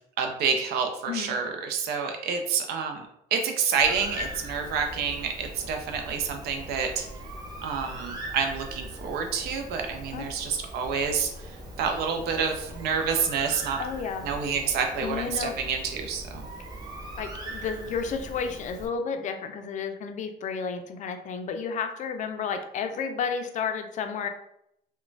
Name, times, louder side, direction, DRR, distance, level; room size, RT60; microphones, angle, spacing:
voice 1, 0.2-3.0 3.3-7.1 7.6-11.3 11.8-13.8 14.2-16.5, right 6 dB, 70° right, 4 dB, 0.5 m, -28 dB
Bird, 3.8-18.9, right 1 dB, 25° right, 0.7 m, -40 dB
voice 2, 13.8-14.3 15.0-15.5 17.2-24.3, left 6 dB, 45° left, 7 dB, 0.4 m, -32 dB
2.9 x 2.1 x 2.5 m, 0.76 s
cardioid pair, 110°, 17 cm